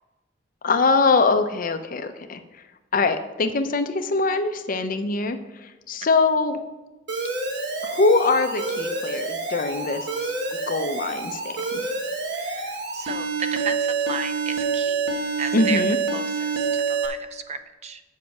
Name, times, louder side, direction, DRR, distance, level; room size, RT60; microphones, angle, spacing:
voice 1, 0.6-2.4 2.9-5.4 5.9-6.6 7.8-10.3 10.7-11.8 15.5-16.0, left 3 dB, 50° left, 9 dB, 0.6 m, -22 dB
Alarm, 7.1-17.1, right 4 dB, 65° right, 1.3 m, -27 dB
voice 2, 12.3-15.9 16.1-18.0, right 5 dB, 35° right, 10 dB, 0.5 m, -34 dB
7.4 x 5.9 x 6.4 m, 1.1 s
head